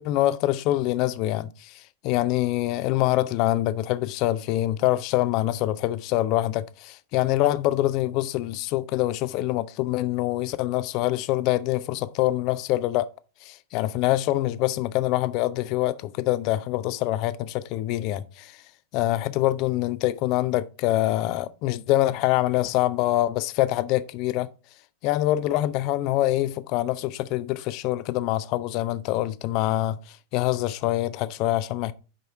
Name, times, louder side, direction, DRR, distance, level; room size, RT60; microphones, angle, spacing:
voice 1, 0.0-13.1 13.4-18.6 18.9-24.5 25.0-31.9, left 15 dB, 40° left, 0.5 m, -25 dB
6.3 x 5.5 x 4.7 m
figure-of-eight pair, 90°, 0 cm